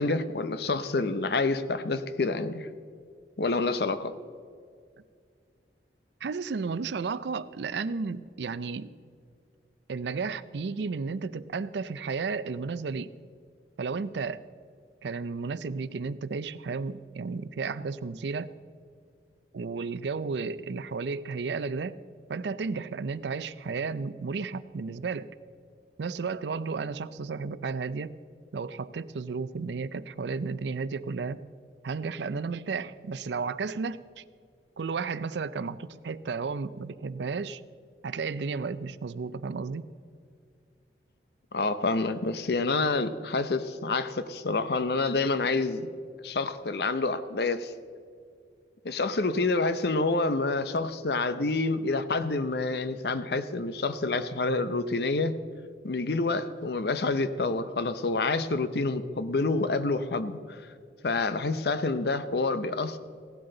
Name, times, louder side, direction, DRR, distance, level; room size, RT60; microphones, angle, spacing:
voice 1, 0.0-2.7 3.4-4.2 41.5-45.9 46.2-47.7 48.8-55.4 55.8-60.6 61.0-63.0, left 3 dB, 65° left, 12 dB, 0.6 m, -28 dB
voice 2, 6.2-8.9 9.9-13.1 13.8-14.4 15.0-18.5 19.5-22.0 22.3-25.3 26.0-28.1 28.5-31.4 31.8-34.2 34.8-37.6 38.0-39.9, right 4 dB, 80° right, 16 dB, 0.5 m, -33 dB
16.5 x 12.0 x 3.8 m, 2.2 s
head